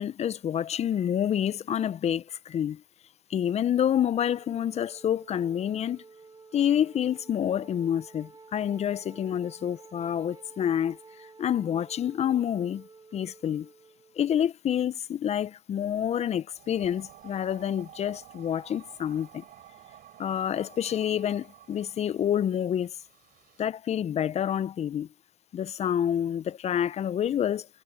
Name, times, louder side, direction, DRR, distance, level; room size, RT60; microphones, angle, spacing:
voice 1, 0.0-2.8 3.3-6.0 6.5-12.9 13.1-13.7 14.2-19.4 20.2-23.0 23.6-25.1 25.5-27.7, left 9 dB, 35° left, 1.0 m, -28 dB
Wind instrument woodwind instrument, 4.2-14.5, right 4 dB, 20° right, 5.8 m, -52 dB
sound 1, 16.5-23.6, right 12 dB, 45° right, 7.8 m, -52 dB
hypercardioid pair, 90°, 20 cm